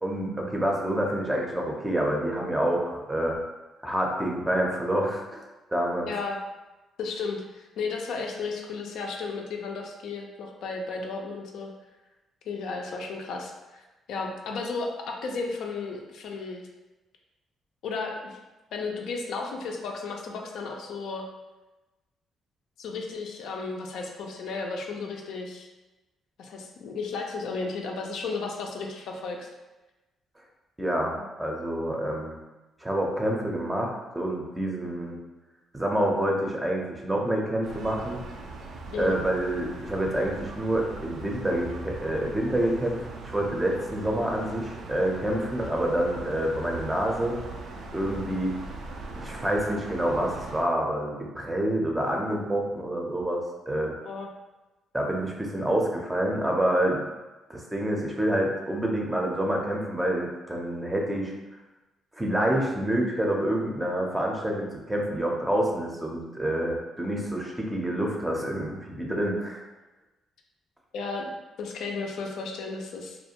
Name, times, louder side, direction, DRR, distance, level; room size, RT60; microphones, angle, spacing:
voice 1, 0.0-3.4 3.8-5.4 5.7-6.1 30.8-32.4 32.8-35.2 35.7-38.2 38.9-47.4 47.9-48.5 49.2-53.9 54.9-57.1 57.5-61.3 62.2-69.6, right 1 dB, 10° right, -1 dB, 0.5 m, -27 dB
voice 2, 6.1-6.4 7.0-11.7 12.4-16.7 17.8-18.4 18.7-21.3 22.8-25.7 26.4-29.5 31.2-31.3 38.9-39.2 54.0-54.3 70.9-71.3 71.6-73.2, left 4 dB, 80° left, 1 dB, 0.4 m, -34 dB
sound 1, 37.6-50.6, right 3 dB, 80° right, 0.3 m, -40 dB
2.4 x 2.2 x 2.8 m, 1.1 s
cardioid pair, 90°, 0 cm